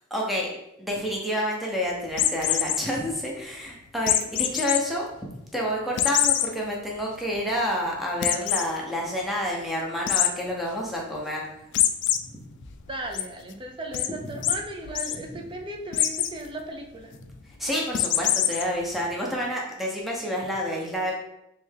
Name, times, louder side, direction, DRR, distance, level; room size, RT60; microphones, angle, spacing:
voice 1, 0.1-0.5 0.8-5.1 5.5-11.4 12.3-12.4 17.6-21.2, equal, ahead, -2 dB, 0.8 m, -29 dB
sound 1, 2.1-2.8 4.1-4.8 5.2-5.3 6.0-6.5 7.0-7.1 7.3-7.4 8.2-8.7 10.1-10.3 11.7-12.2 12.6-13.2 13.9-14.1 14.4-14.6 14.8-15.2 15.9-16.3 17.9-18.6, left 11 dB, 60° left, 0.3 m, -23 dB
voice 2, 12.9-17.1, right 1 dB, 25° right, 2 dB, 0.5 m, -36 dB
3.4 x 3.2 x 3.3 m, 0.84 s
head